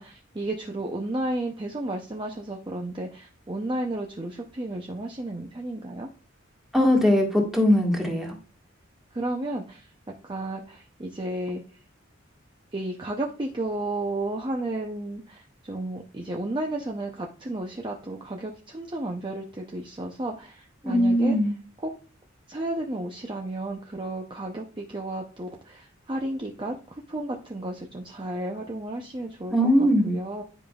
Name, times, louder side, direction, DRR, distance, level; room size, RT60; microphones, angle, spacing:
voice 1, 0.0-6.1 9.1-11.6 12.7-21.4 21.8-21.9 22.5-30.4, right 1 dB, 25° right, 1 dB, 0.6 m, -33 dB
voice 2, 6.7-8.3 20.8-21.5 29.5-30.2, equal, ahead, -1 dB, 1.7 m, -20 dB
10.0 x 5.1 x 2.4 m, 0.35 s
head